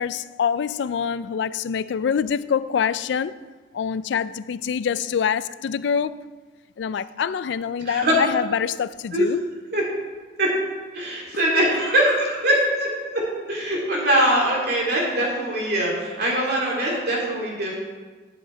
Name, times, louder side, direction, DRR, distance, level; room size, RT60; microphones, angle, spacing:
voice 1, 0.0-3.4 3.7-6.3 6.8-9.4, left 7 dB, 75° left, 16 dB, 0.3 m, -25 dB
voice 2, 10.9-13.2 13.5-17.8, right 1 dB, 60° right, -3 dB, 2.8 m, -22 dB
11.0 x 7.6 x 4.5 m, 1.4 s
head